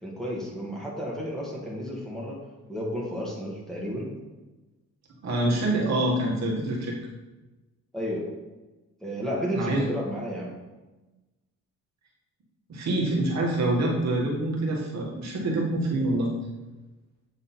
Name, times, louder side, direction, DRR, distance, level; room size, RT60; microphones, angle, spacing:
voice 1, 0.0-4.1 7.9-8.3 9.0-10.6, equal, ahead, -5 dB, 1.9 m, -32 dB
voice 2, 5.2-7.0 9.5-9.8 12.7-16.3, right 1 dB, 60° right, -3 dB, 1.8 m, -26 dB
8.3 x 3.8 x 4.3 m, 1.1 s
cardioid pair, 90°, 30 cm